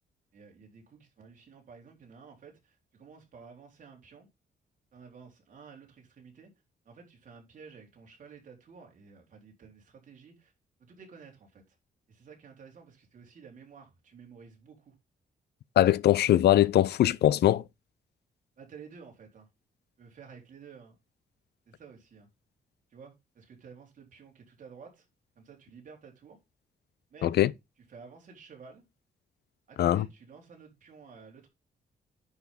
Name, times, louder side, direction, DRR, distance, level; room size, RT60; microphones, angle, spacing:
voice 1, 0.3-4.3 4.9-6.5 6.9-10.5 10.8-11.8 12.1-15.0 18.6-19.5 20.0-21.0 21.7-22.3 22.9-25.1 25.4-26.4 27.1-27.4 27.9-28.8 29.7-31.5, right 5 dB, 50° right, 3.8 m, -52 dB
voice 2, 15.8-17.6 27.2-27.5 29.8-30.1, left 12 dB, 75° left, 0.5 m, -22 dB
10.5 x 6.0 x 3.6 m
wide cardioid pair, 150°, 17 cm